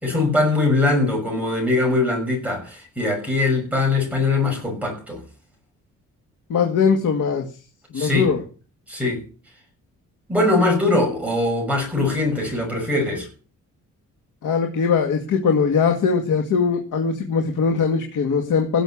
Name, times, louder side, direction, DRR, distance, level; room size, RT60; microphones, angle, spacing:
voice 1, 0.0-5.2 7.9-8.3 8.9-9.2 10.3-13.3, left 2 dB, 5° right, 6.2 m, -21 dB
voice 2, 6.5-7.4 7.9-8.4 14.4-18.8, left 5 dB, 75° left, 2.2 m, -20 dB
17.5 x 7.1 x 7.2 m
wide cardioid pair, 150°, 31 cm